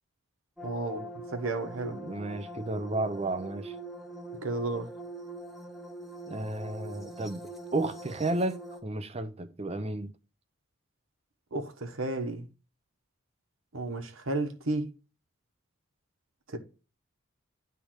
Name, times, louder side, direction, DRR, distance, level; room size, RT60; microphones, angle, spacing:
sound 1, 0.6-8.8, right 1 dB, ahead, 0.9 m, -43 dB
voice 1, 0.6-2.0 4.4-4.9 11.5-12.5 13.7-14.9 16.5-16.6, right 2 dB, 75° right, 1.2 m, -33 dB
voice 2, 1.9-3.7 6.3-10.1, right 2 dB, 30° right, 0.6 m, -33 dB
10.5 x 3.4 x 6.3 m
head